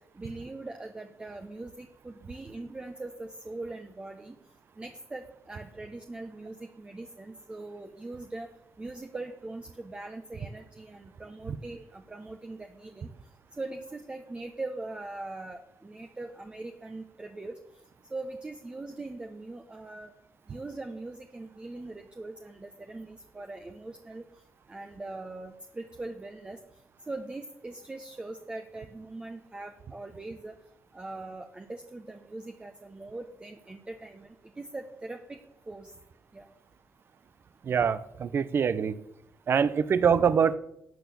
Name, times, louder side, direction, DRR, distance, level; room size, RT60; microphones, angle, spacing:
voice 1, 0.1-4.4 4.8-8.5 8.8-13.1 13.6-17.6 18.1-20.1 20.5-24.2 24.7-26.6 27.1-30.6 30.9-35.4 35.7-35.9 36.3-36.5, right 2 dB, 20° right, 5 dB, 1.0 m, -41 dB
voice 2, 37.6-39.0 39.5-40.6, right 7 dB, 50° right, 15 dB, 0.8 m, -24 dB
12.0 x 7.0 x 7.0 m, 0.78 s
cardioid pair, 90°, 5 cm